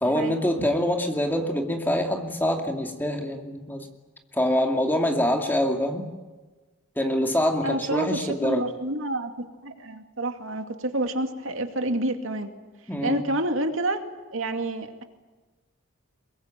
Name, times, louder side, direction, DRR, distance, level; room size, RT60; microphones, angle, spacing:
voice 1, 0.0-3.9 4.3-6.0 7.0-8.7 12.9-13.3, left 1 dB, 10° left, 3 dB, 2.5 m, -25 dB
voice 2, 7.6-12.5 13.0-14.0 14.3-15.0, right 2 dB, 75° right, 6 dB, 2.4 m, -28 dB
23.5 x 22.5 x 9.1 m, 1.2 s
head